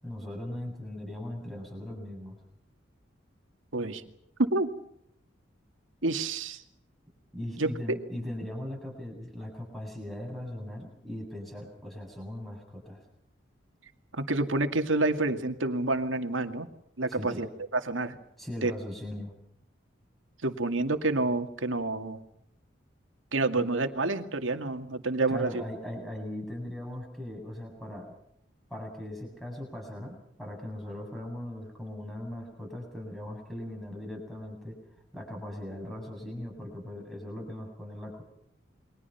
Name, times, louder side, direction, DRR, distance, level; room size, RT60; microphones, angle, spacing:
voice 1, 0.0-2.4 7.3-13.0 17.1-17.4 18.4-19.3 23.6-23.7 25.3-28.1 28.7-34.8 35.1-38.2, left 1 dB, ahead, 1 dB, 7.7 m, -39 dB
voice 2, 3.7-4.0 4.4-4.7 6.0-6.6 7.6-7.7 14.1-16.7 17.0-18.2 18.6-18.7 20.4-22.2 23.3-25.6, right 2 dB, 90° right, 7 dB, 2.3 m, -28 dB
29.5 x 23.0 x 5.8 m, 0.74 s
head